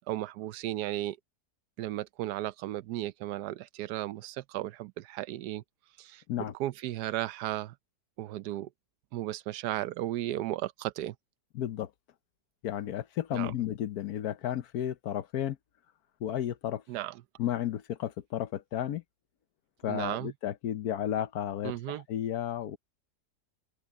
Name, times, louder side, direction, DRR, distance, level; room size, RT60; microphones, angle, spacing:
voice 1, 0.1-1.2 1.8-5.6 6.0-7.7 8.2-8.7 9.1-11.1 13.3-13.5 16.9-17.2 19.9-20.3 21.6-22.0, right 14 dB, 90° right, 1.2 m, -35 dB
voice 2, 11.5-11.9 12.6-15.6 16.2-16.8 17.4-19.0 19.8-22.8, left 11 dB, 75° left, 1.3 m, -33 dB
omnidirectional pair, 1.7 m